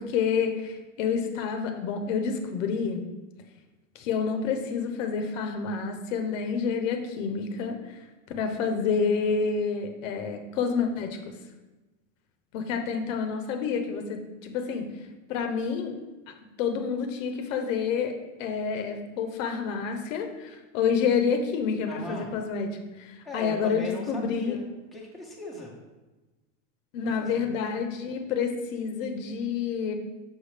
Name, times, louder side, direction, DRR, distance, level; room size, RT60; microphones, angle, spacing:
voice 1, 0.0-3.0 3.9-7.8 8.4-11.3 12.5-14.9 15.3-15.9 16.3-22.7 23.0-24.6 26.9-29.9, left 6 dB, 75° left, 5 dB, 0.9 m, -28 dB
voice 2, 21.9-22.3 23.2-25.8 27.2-27.5, left 2 dB, ahead, -4 dB, 1.1 m, -39 dB
5.9 x 4.9 x 3.3 m, 1.1 s
supercardioid pair, 125°, 38 cm